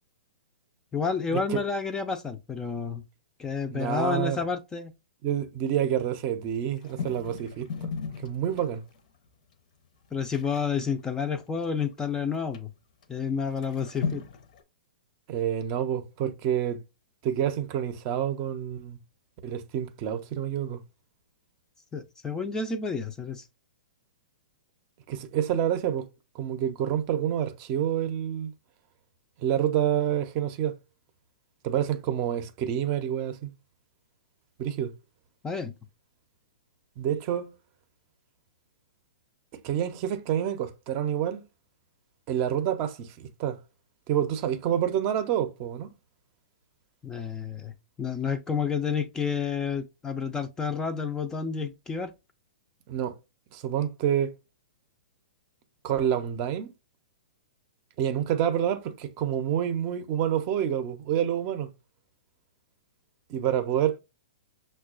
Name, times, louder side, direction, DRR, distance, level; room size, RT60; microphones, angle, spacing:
voice 1, 0.9-3.0 3.4-4.9 10.1-12.7 13.1-14.2 21.9-23.4 35.4-35.7 47.0-47.7 48.0-52.1, left 5 dB, 15° left, 0.4 m, -30 dB
voice 2, 3.7-4.4 5.2-7.7 8.2-8.8 15.3-16.8 17.2-19.0 19.4-20.8 25.1-26.1 26.3-28.5 29.4-30.7 31.6-33.5 34.6-34.9 37.0-37.5 39.6-41.4 42.3-43.6 44.1-45.9 52.9-53.1 53.5-54.3 55.8-56.7 58.0-61.7 63.3-64.0, right 10 dB, 40° right, 0.6 m, -28 dB
sound 1, 6.4-9.0 9.5-9.6 9.8-12.0 12.5-12.6 13.0-13.1 13.5-14.6, left 6 dB, 60° left, 0.7 m, -37 dB
5.8 x 2.2 x 2.3 m
hypercardioid pair, 125°, 5 cm